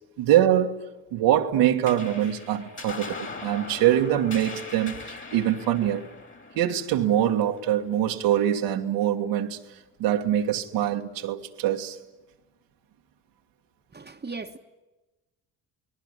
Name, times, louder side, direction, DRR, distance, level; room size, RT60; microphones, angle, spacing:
voice 1, 0.2-0.8 1.1-6.1 6.6-9.6 10.0-12.0, right 11 dB, 80° right, 1.9 m, -24 dB
sound 1, 1.9-8.6, left 4 dB, 30° left, 2.8 m, -41 dB
voice 2, 13.9-14.6, right 4 dB, 20° right, 1.4 m, -37 dB
29.5 x 19.0 x 9.8 m
supercardioid pair, 70°, 42 cm